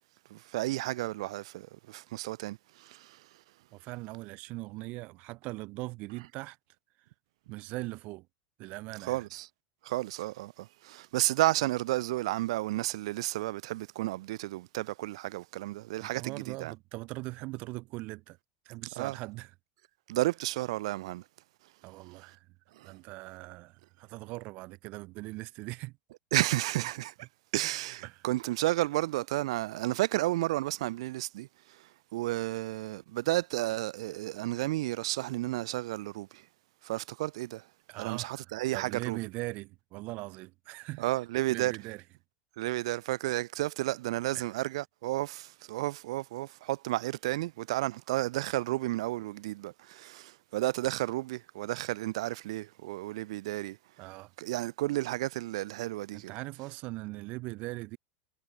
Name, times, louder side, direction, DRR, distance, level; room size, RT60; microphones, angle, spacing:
voice 1, 0.3-3.2 9.0-9.5 9.8-16.7 19.0-19.2 20.1-21.2 22.8-22.9 26.3-27.3 27.5-31.5 32.1-36.4 36.8-37.6 38.0-39.2 41.0-41.7 42.6-53.8 54.4-56.3, right 17 dB, 80° right, 2.4 m, -32 dB
voice 2, 3.7-6.6 7.5-8.3 8.6-9.3 16.0-18.4 18.6-19.5 21.8-22.4 22.8-25.9 28.0-28.2 37.9-41.0 41.5-42.0 44.3-44.4 54.0-54.3 56.1-58.0, right 22 dB, 55° right, 1.6 m, -40 dB
supercardioid pair, 120°, 3 cm